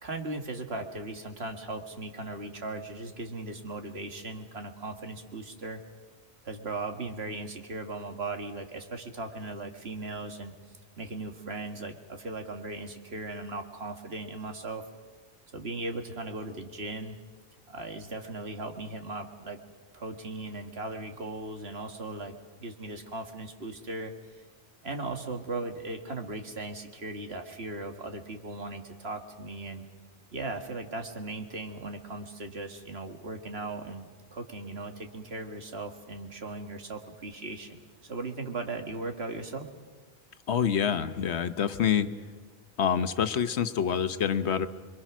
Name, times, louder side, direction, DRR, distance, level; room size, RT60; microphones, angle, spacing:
voice 1, 0.0-5.8 6.4-10.5 11.0-14.9 15.5-17.2 17.7-19.6 19.9-24.1 24.8-29.8 30.3-39.7, right 2 dB, 70° right, 5 dB, 2.1 m, -38 dB
voice 2, 40.5-42.1 42.8-44.7, left 8 dB, 90° left, 11 dB, 1.3 m, -26 dB
26.5 x 23.5 x 6.2 m, 1.4 s
omnidirectional pair, 1.1 m